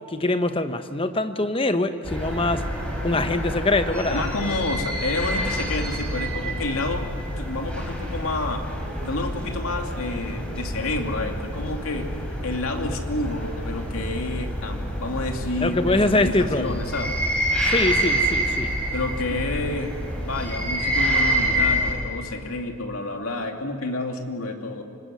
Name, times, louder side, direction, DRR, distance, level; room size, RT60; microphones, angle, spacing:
voice 1, 0.0-2.7 3.0-4.2 15.6-16.8 17.6-18.8, left 2 dB, 25° left, 9 dB, 1.0 m, -23 dB
sound 1, 2.0-21.9, equal, 5° left, 6.0 m, -27 dB
voice 2, 4.1-7.1 7.4-8.7 9.0-12.1 12.4-15.8 16.1-17.2 18.9-24.8, left 2 dB, 80° left, 3 dB, 2.6 m, -29 dB
25.5 x 21.0 x 9.4 m, 2.3 s
head